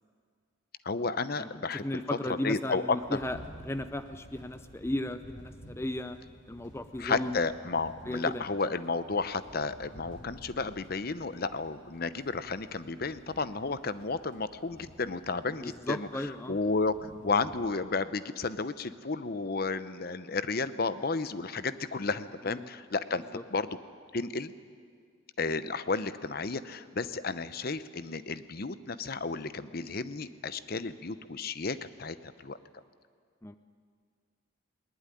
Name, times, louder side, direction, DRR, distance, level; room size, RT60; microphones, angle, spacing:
voice 1, 0.8-1.9 2.3-3.2 7.0-23.2 23.5-23.8 24.1-24.5 25.4-32.6, left 4 dB, 50° left, 13 dB, 0.8 m, -32 dB
voice 2, 1.8-3.4 3.6-6.2 6.5-7.4 8.1-8.5 15.5-16.6 22.5-22.7 23.2-23.4 33.4-33.6, left 1 dB, 15° left, 10 dB, 0.5 m, -35 dB
sound 1, 3.0-17.7, equal, 65° left, 3.2 m, -53 dB
20.0 x 19.0 x 10.0 m, 2.1 s
head